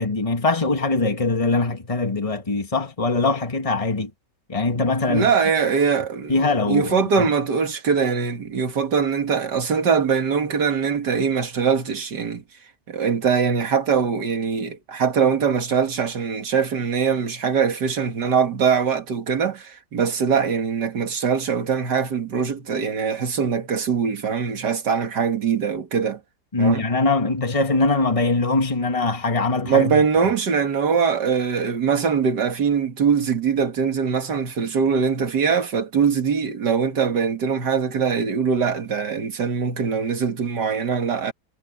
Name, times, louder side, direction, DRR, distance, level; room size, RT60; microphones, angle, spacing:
voice 1, 0.0-4.1 4.5-5.3 6.3-7.3 26.5-30.0, left 3 dB, 20° left, 1.9 m, -22 dB
voice 2, 5.1-6.4 6.7-12.4 12.9-26.2 26.6-26.8 29.6-41.3, right 6 dB, 85° right, 2.5 m, -22 dB
omnidirectional pair, 1.8 m